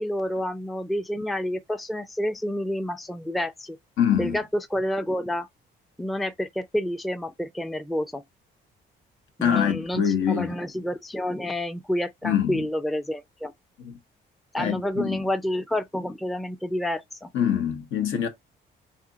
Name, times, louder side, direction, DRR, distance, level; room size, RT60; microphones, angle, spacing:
voice 1, 0.0-3.8 4.2-5.5 6.0-8.2 9.4-13.5 14.5-17.3, left 1 dB, ahead, 0.4 m, -29 dB
voice 2, 4.0-4.4 9.4-10.5 12.2-12.6 13.8-13.9 14.6-15.2 17.3-18.3, left 8 dB, 70° left, 0.9 m, -24 dB
2.7 x 2.6 x 3.7 m
supercardioid pair, 65°, 21 cm